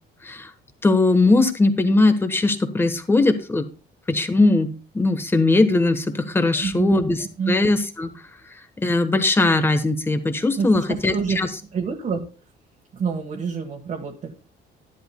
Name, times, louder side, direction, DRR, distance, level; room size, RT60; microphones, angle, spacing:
voice 1, 0.8-3.6 4.1-8.1 8.8-11.5, left 2 dB, 10° left, 9 dB, 1.1 m, -20 dB
voice 2, 6.6-7.0 7.4-7.6 10.6-11.4 11.7-12.2 12.9-14.3, right 5 dB, 40° right, 1 dB, 1.5 m, -27 dB
12.5 x 11.5 x 2.2 m, 0.34 s
cardioid pair, 150°, 18 cm